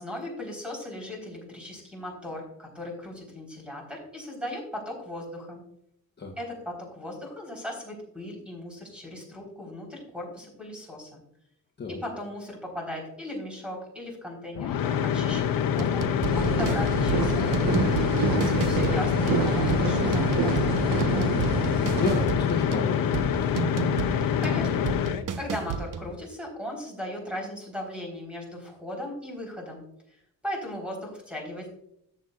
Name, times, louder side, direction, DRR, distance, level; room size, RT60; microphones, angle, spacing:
voice 1, 0.0-5.6 6.4-11.2 11.9-17.7 18.3-21.0 24.4-31.7, left 1 dB, 5° right, 0 dB, 3.9 m, -37 dB
sound 1, 14.5-25.2, left 8 dB, 75° left, 0.8 m, -26 dB
sound 2, 15.8-26.1, right 7 dB, 65° right, 0.8 m, -34 dB
sound 3, 16.2-22.3, right 4 dB, 80° right, 1.3 m, -28 dB
voice 2, 21.7-23.6, left 5 dB, 30° left, 0 dB, 1.1 m, -32 dB
13.5 x 7.7 x 2.4 m, 0.77 s
wide cardioid pair, 150°, 35 cm